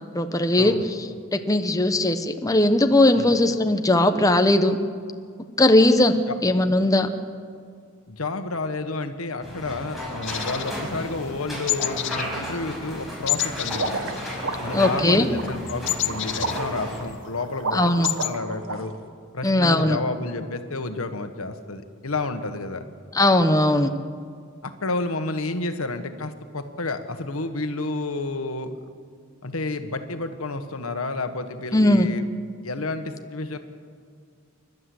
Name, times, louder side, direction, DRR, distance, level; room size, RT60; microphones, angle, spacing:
voice 1, 0.1-4.8 5.6-6.2 6.4-7.1 14.7-15.3 17.7-18.1 19.4-20.0 23.1-23.9 31.7-32.1, left 1 dB, 15° left, 7 dB, 1.0 m, -19 dB
voice 2, 8.1-14.2 14.6-19.0 19.3-22.8 24.6-28.7 29.4-32.2 32.6-33.6, left 2 dB, 90° left, 8 dB, 1.4 m, -30 dB
sound 1, 9.4-17.0, equal, ahead, 6.2 m, -34 dB
sound 2, 10.2-11.4 11.7-12.3 12.5-12.8 13.3-14.8 15.1-17.2 17.5-17.6 17.8-18.3, left 13 dB, 60° left, 0.9 m, -29 dB
sound 3, 13.7-18.7, right 3 dB, 70° right, 1.7 m, -31 dB
29.0 x 12.5 x 7.9 m, 2.1 s
head